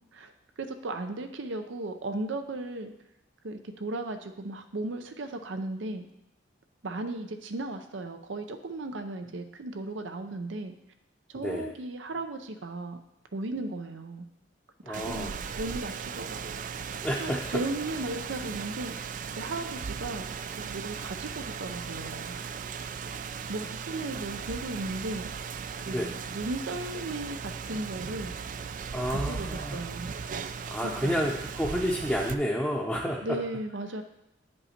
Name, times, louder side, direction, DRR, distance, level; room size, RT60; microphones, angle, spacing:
voice 1, 0.6-2.9 3.4-6.1 6.8-10.7 11.3-13.0 13.3-14.3 14.9-16.5 17.0-20.3 20.6-22.4 23.5-25.3 25.8-28.4 29.0-30.1 30.8-31.2 33.2-34.0, right 2 dB, 80° right, 6 dB, 0.7 m, -36 dB
voice 2, 14.8-15.3 17.0-17.4 25.9-26.1 28.9-29.8 30.7-33.2, equal, 5° left, -5 dB, 0.7 m, -30 dB
Rain, 14.9-32.3, right 6 dB, 45° right, 0.3 m, -37 dB
9.7 x 5.5 x 4.3 m, 0.85 s
head